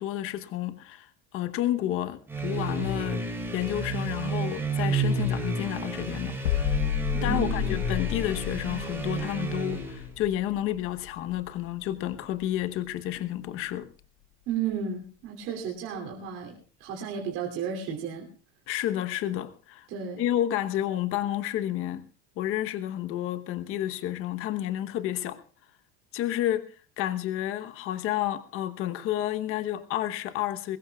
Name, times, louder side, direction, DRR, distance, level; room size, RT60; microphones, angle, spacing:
voice 1, 0.0-3.3 3.5-6.7 7.2-13.9 18.7-19.9 20.2-22.1 22.4-25.4 26.1-30.8, left 12 dB, 40° left, 1.1 m, -30 dB
sound 1, 2.3-10.1, right 3 dB, 5° right, 2.8 m, -31 dB
sound 2, 6.5-12.2 12.4-12.7, left 12 dB, 85° left, 1.1 m, -32 dB
voice 2, 7.1-7.8 14.5-16.5 16.8-18.3 19.9-20.2, right 6 dB, 55° right, 3.1 m, -33 dB
22.5 x 20.0 x 2.4 m
cardioid pair, 160°, 33 cm